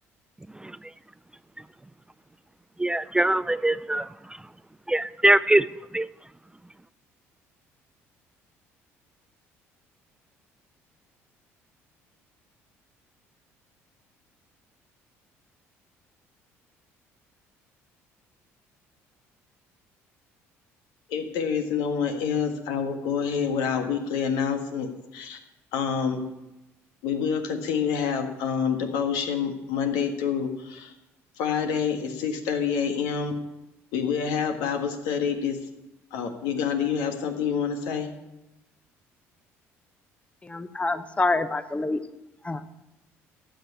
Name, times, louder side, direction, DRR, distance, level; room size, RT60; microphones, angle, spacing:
voice 1, 2.8-4.1 4.9-5.7 5.9-6.1, right 1 dB, 10° right, 16 dB, 0.4 m, -21 dB
voice 2, 21.1-25.4 25.7-26.2 27.0-30.9 31.4-33.4 33.9-35.6 36.1-38.1, left 7 dB, 75° left, 5 dB, 1.6 m, -27 dB
voice 3, 40.4-42.0 42.4-42.7, left 3 dB, 20° left, 12 dB, 0.9 m, -27 dB
12.0 x 6.5 x 8.3 m, 0.97 s
hypercardioid pair, 65°, 7 cm